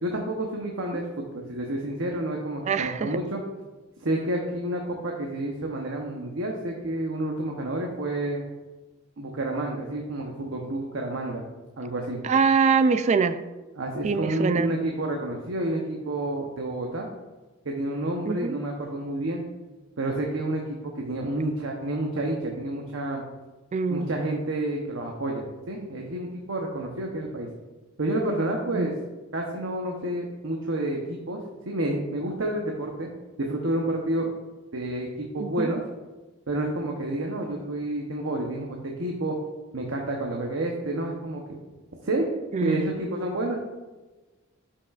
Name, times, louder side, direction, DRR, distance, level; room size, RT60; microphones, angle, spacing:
voice 1, 0.0-3.4 4.0-8.4 9.2-11.4 11.8-12.2 13.8-17.1 17.6-19.4 20.0-23.2 23.9-27.5 28.0-28.9 29.3-31.4 31.6-33.1 33.4-34.3 34.7-35.8 36.5-39.4 39.7-41.6 42.0-42.3 42.6-43.6, right 1 dB, 80° right, 0 dB, 0.9 m, -29 dB
voice 2, 2.6-3.2 12.2-13.4 14.0-14.7 18.3-18.6 23.7-24.1 28.7-28.9 35.4-35.7 42.5-42.9, right 5 dB, 35° right, 12 dB, 0.3 m, -24 dB
11.5 x 5.9 x 2.4 m, 1.2 s
head